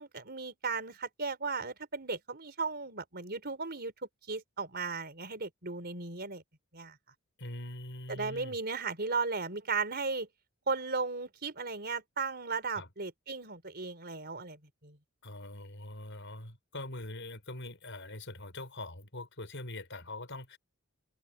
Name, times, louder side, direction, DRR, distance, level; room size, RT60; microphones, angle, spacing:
voice 1, 0.0-3.9 4.3-6.4 6.7-7.0 8.1-10.3 10.7-15.0, right 4 dB, 45° right, 4.5 m, -36 dB
voice 2, 7.4-8.6 12.8-12.9 15.2-20.6, left 2 dB, 55° left, 6.5 m, -43 dB
head